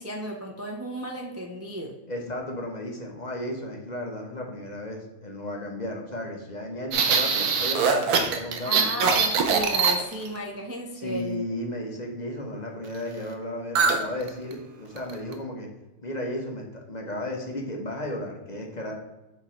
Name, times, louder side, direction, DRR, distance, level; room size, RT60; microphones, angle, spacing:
voice 1, 0.0-2.0 8.6-11.4, equal, 15° right, 0 dB, 0.5 m, -34 dB
voice 2, 2.1-8.9 10.9-15.7 16.0-18.9, left 1 dB, 30° left, 0 dB, 1.0 m, -34 dB
sound 1, 6.9-10.4 13.8-14.0 14.3-14.5 15.0-15.3, right 5 dB, 85° right, 1.3 m, -22 dB
7.4 x 3.7 x 4.3 m, 1.0 s
omnidirectional pair, 1.6 m